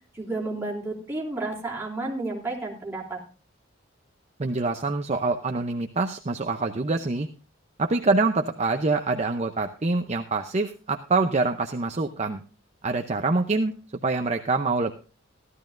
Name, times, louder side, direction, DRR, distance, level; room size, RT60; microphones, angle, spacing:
voice 1, 0.1-3.2, right 2 dB, 10° right, -2 dB, 3.2 m, -31 dB
voice 2, 4.4-7.3 7.8-12.4 12.8-13.7 14.0-14.9, right 3 dB, 35° right, 5 dB, 0.6 m, -25 dB
15.5 x 12.5 x 2.5 m, 0.34 s
head